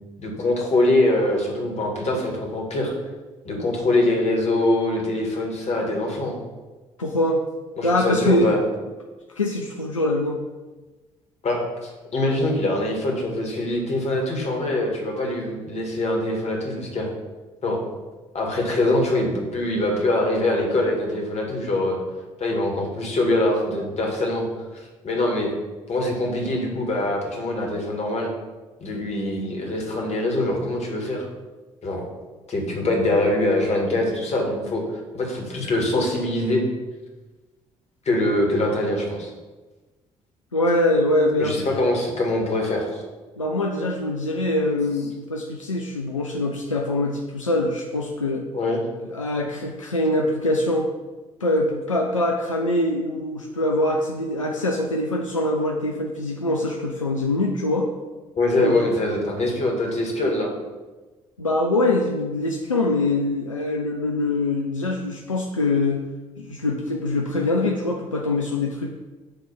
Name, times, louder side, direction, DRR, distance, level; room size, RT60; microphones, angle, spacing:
voice 1, 0.2-2.9 3.4-6.4 7.8-8.6 11.4-17.1 17.6-17.8 18.3-22.0 22.4-24.5 24.7-25.5 25.9-28.3 28.8-31.3 31.8-32.0 32.5-34.8 35.1-36.6 38.1-39.3 41.4-43.0 48.5-48.8 58.4-60.5, left 1 dB, 45° left, 0 dB, 2.0 m, -23 dB
voice 2, 7.0-7.4 7.8-8.6 9.4-10.4 40.5-41.6 43.4-48.4 49.1-50.9 51.4-57.9 58.6-58.8 61.4-66.0 66.4-68.9, left 2 dB, 90° left, 0 dB, 0.4 m, -23 dB
9.5 x 3.3 x 5.7 m, 1.2 s
figure-of-eight pair, 45°, 16 cm